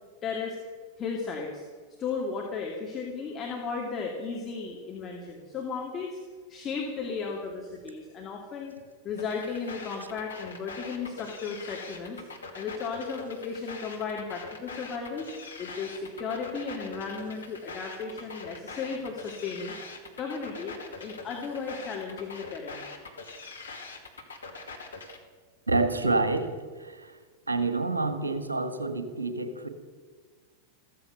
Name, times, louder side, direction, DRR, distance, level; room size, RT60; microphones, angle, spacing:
voice 1, 0.2-0.6 1.0-1.6 2.0-6.2 6.5-8.8 9.0-12.2 12.5-15.3 15.6-19.7 20.2-22.8, left 5 dB, 25° left, -1 dB, 2.5 m, -35 dB
sound 1, 9.2-25.2, left 4 dB, 75° left, 2.3 m, -43 dB
voice 2, 25.7-26.5 26.8-27.2 27.5-29.7, right 3 dB, 80° right, 9 dB, 1.6 m, -28 dB
14.5 x 14.5 x 6.7 m, 1.5 s
figure-of-eight pair, 90°, 0 cm